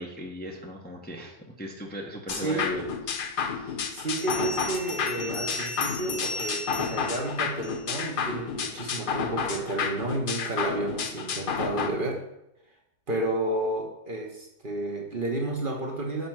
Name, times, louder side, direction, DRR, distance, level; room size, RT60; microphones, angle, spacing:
voice 1, 0.0-2.8 3.1-3.8, equal, 10° left, 0 dB, 0.8 m, -38 dB
sound 1, 2.3-11.9, left 6 dB, 50° left, 0.6 m, -31 dB
voice 2, 2.3-2.9 3.9-12.2 13.1-16.3, right 2 dB, 40° right, 1 dB, 1.1 m, -31 dB
Bell, 3.0-3.1 4.2-8.1, left 2 dB, 90° left, 1.5 m, -36 dB
5.9 x 5.2 x 5.9 m, 0.83 s
omnidirectional pair, 1.5 m